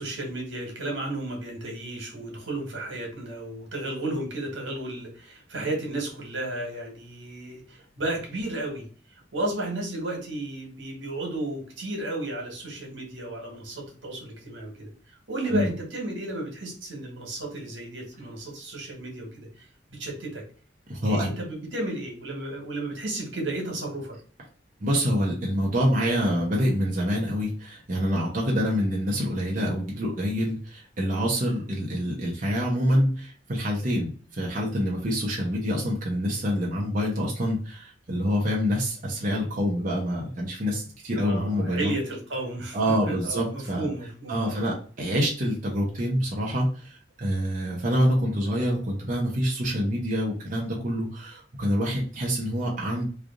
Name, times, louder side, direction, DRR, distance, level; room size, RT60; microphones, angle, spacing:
voice 1, 0.0-14.9 15.3-20.4 21.0-24.2 41.1-42.8 43.1-44.6, right 2 dB, 90° right, 0 dB, 1.6 m, -33 dB
voice 2, 20.9-21.3 24.8-41.9 42.7-43.9 44.3-53.1, equal, 45° right, -2 dB, 0.8 m, -26 dB
3.3 x 2.5 x 3.7 m, 0.41 s
head